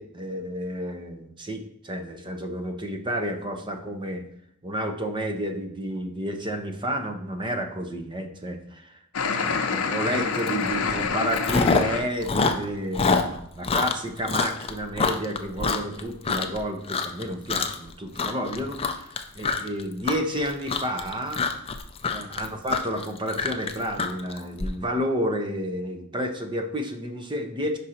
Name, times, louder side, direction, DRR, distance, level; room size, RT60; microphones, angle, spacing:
voice 1, 0.0-4.2 4.6-9.0 9.4-21.4 22.1-27.8, equal, 20° right, 5 dB, 0.7 m, -31 dB
sound 1, 9.1-12.1, left 5 dB, 80° left, 0.7 m, -27 dB
Chewing mastication, 10.5-10.7 11.0-12.0 12.2-16.6 16.9-17.2 17.5-17.9 18.1-24.7, left 4 dB, 25° left, 0.4 m, -26 dB
5.3 x 4.9 x 4.2 m, 0.72 s
head